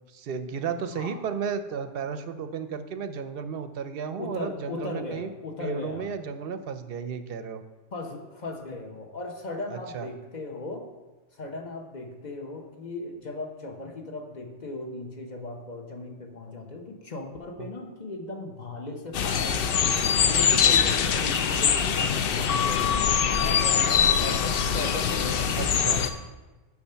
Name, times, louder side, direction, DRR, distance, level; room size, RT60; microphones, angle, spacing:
voice 1, 0.1-5.3 5.6-7.6 9.7-10.1 17.6-17.7 25.6-26.1, right 6 dB, 60° right, 10 dB, 0.7 m, -33 dB
voice 2, 0.9-1.2 4.2-6.1 7.9-10.9 11.3-19.6 20.0-25.7, left 2 dB, 40° left, 3 dB, 1.0 m, -37 dB
sound 1, 19.1-26.1, left 7 dB, 60° left, 0.7 m, -23 dB
7.1 x 6.5 x 5.6 m, 1.2 s
omnidirectional pair, 1.3 m